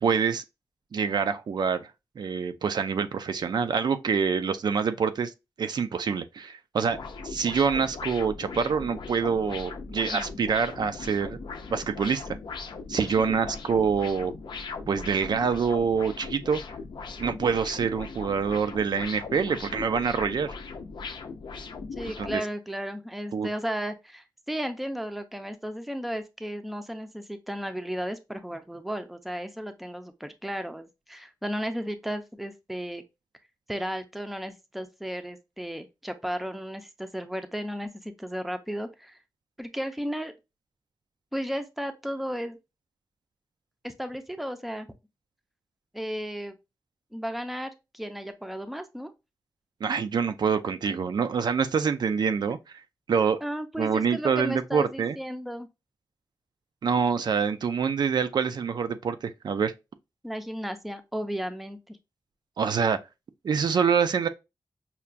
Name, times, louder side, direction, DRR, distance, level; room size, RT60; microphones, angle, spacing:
voice 1, 0.0-0.4 0.9-1.9 2.2-5.3 5.6-7.0 7.2-11.4 11.7-12.4 12.9-14.3 14.9-16.6 17.2-20.5 22.2-22.4 23.3-23.5 49.8-52.6 53.1-53.4 53.8-55.2 56.8-59.7 62.6-63.0 63.4-64.3, right 6 dB, 70° right, 0.3 m, -26 dB
sound 1, 6.9-22.4, left 4 dB, 85° left, 0.5 m, -39 dB
voice 2, 13.2-13.5 21.9-33.0 33.7-39.2 39.6-40.3 41.3-42.6 43.8-44.9 45.9-46.5 47.1-49.1 53.4-55.7 60.2-62.0, equal, ahead, 0.4 m, -34 dB
5.6 x 2.2 x 2.4 m
wide cardioid pair, 140°, 8 cm